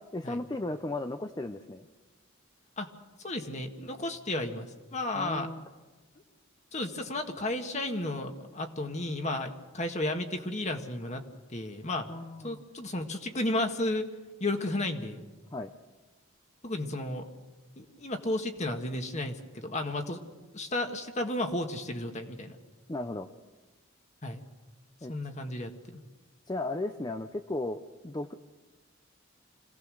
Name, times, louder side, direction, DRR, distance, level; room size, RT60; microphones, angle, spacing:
voice 1, 0.0-1.9 5.1-5.6 12.1-12.6 15.5-15.7 22.9-23.3 25.0-25.1 26.5-28.3, left 2 dB, 20° left, 8 dB, 0.6 m, -35 dB
voice 2, 3.2-5.5 6.7-11.2 11.5-12.1 12.4-14.1 14.4-15.2 16.6-17.3 17.8-20.2 20.5-22.6 24.2-24.4 25.1-26.0, left 1 dB, 35° left, 5 dB, 1.7 m, -33 dB
26.0 x 17.5 x 6.4 m, 1.2 s
head